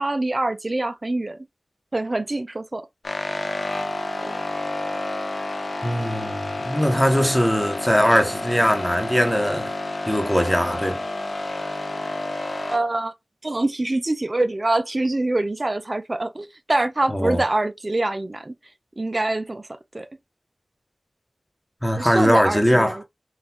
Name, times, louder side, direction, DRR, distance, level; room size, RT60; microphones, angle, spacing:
voice 1, 0.0-1.4 1.9-2.9 12.7-13.1 13.4-18.5 19.0-19.7 19.9-20.1 22.0-23.0, right 2 dB, 40° right, 0.5 m, -24 dB
sound 1, 3.0-12.8, left 2 dB, 65° left, 0.7 m, -30 dB
voice 2, 5.8-9.7 10.1-11.0 17.1-17.4 21.8-23.0, equal, 5° left, 1.2 m, -20 dB
3.9 x 2.5 x 2.9 m
wide cardioid pair, 45°, 0 cm